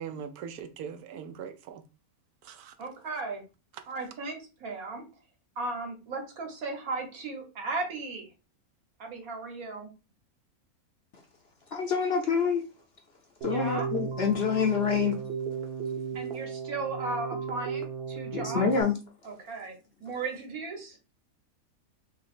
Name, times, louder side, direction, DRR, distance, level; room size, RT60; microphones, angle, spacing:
voice 1, 0.0-1.8 2.4-2.7, right 7 dB, 90° right, 1.1 m, -40 dB
voice 2, 2.8-3.4 3.9-5.0 5.6-8.3 9.0-9.9 13.5-13.9 16.1-18.7 19.2-19.7 20.0-21.0, right 3 dB, 70° right, 1.5 m, -36 dB
voice 3, 11.7-12.6 13.4-15.2 18.3-19.0, left 6 dB, 60° left, 0.7 m, -26 dB
Keyboard (musical), 13.4-18.8, right 6 dB, 50° right, 0.9 m, -35 dB
3.1 x 2.9 x 4.2 m
omnidirectional pair, 1.6 m